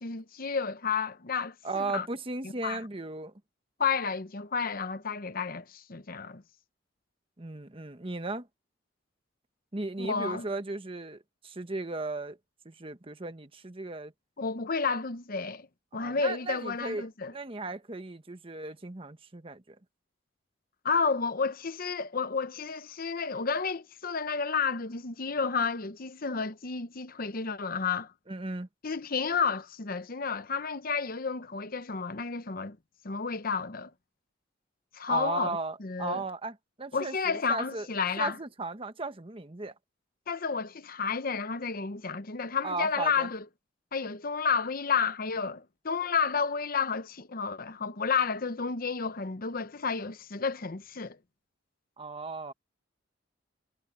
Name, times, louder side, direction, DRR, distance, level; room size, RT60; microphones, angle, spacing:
voice 1, 0.0-2.1 2.4-2.8 3.8-6.4 10.0-10.5 14.4-15.7 15.9-17.3 20.8-28.1 28.8-32.8 33.0-33.9 34.9-36.2 36.9-38.4 40.3-43.4 43.9-51.2, left 5 dB, 50° left, 0.9 m, -31 dB
voice 2, 1.6-3.3 7.4-8.5 9.7-12.4 12.6-14.1 15.9-19.8 28.3-28.7 35.1-37.9 38.2-39.7 42.6-43.3 52.0-52.5, right 3 dB, 30° right, 1.2 m, -36 dB
head